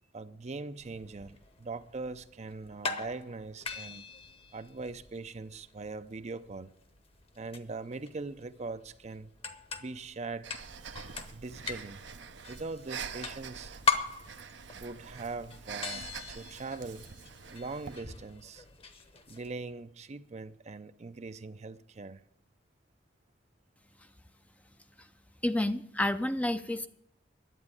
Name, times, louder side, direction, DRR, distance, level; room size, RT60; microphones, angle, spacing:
voice 1, 0.1-4.0 4.5-6.7 7.4-9.3 9.8-10.5 10.8-12.0 12.5-13.7 14.8-17.1 17.5-18.6 19.3-22.2, right 3 dB, 40° right, 0.6 m, -41 dB
sound 1, 0.8-19.5, left 5 dB, 30° left, 1.0 m, -40 dB
Breathing, 10.4-18.0, right 6 dB, 70° right, 0.8 m, -45 dB
voice 2, 25.4-26.9, left 1 dB, 10° left, 0.5 m, -29 dB
11.0 x 8.7 x 9.6 m
head